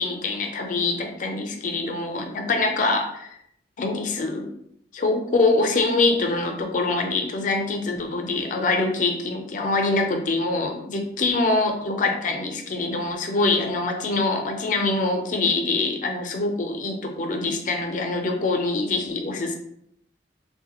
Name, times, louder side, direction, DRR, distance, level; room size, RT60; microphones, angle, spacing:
voice 1, 0.0-3.4 3.8-4.5 4.9-19.6, left 3 dB, 45° left, 4 dB, 0.4 m, -24 dB
3.2 x 2.1 x 2.8 m, 0.74 s
head